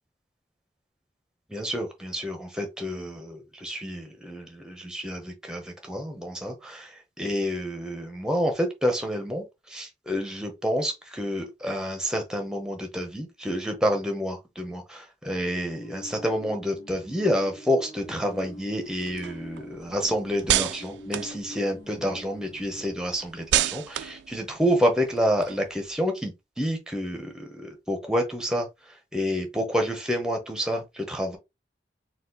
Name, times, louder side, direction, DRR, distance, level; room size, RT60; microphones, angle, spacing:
voice 1, 1.5-31.4, equal, 5° right, 0.9 m, -29 dB
sound 1, 15.8-23.0, left 1 dB, 55° left, 1.5 m, -45 dB
sound 2, 18.0-22.1 22.5-26.0, right 13 dB, 80° right, 0.3 m, -31 dB
4.2 x 2.5 x 4.0 m
head